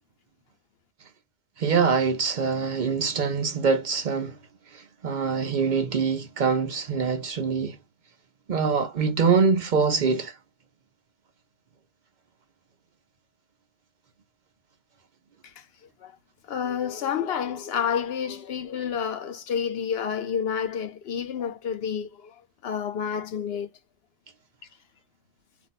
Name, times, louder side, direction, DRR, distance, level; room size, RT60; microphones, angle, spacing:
voice 1, 1.6-4.4 4.7-7.8 8.5-10.3, right 5 dB, 55° right, 0.7 m, -24 dB
voice 2, 16.5-22.4 22.6-23.7, left 7 dB, 75° left, 0.9 m, -29 dB
2.5 x 2.2 x 3.9 m
omnidirectional pair, 1.0 m